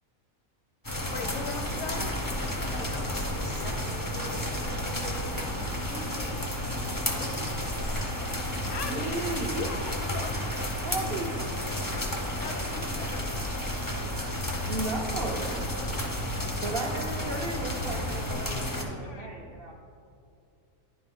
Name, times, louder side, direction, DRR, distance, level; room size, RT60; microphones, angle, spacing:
sound 1, 0.8-18.8, left 1 dB, 25° left, 0.5 m, -32 dB
voice 1, 1.1-2.1 2.8-3.1 5.9-6.5 8.7-10.3 12.4-13.4 19.0-19.3, left 4 dB, 65° left, 5 dB, 0.9 m, -39 dB
voice 2, 1.9-5.4 7.0-7.4 7.8-8.1, equal, 80° left, -2 dB, 1.8 m, -43 dB
voice 3, 8.9-9.6 10.8-11.5 14.7-15.7 16.6-19.7, right 3 dB, 65° right, -1 dB, 0.6 m, -35 dB
10.0 x 4.4 x 3.5 m, 2.5 s
omnidirectional pair, 1.5 m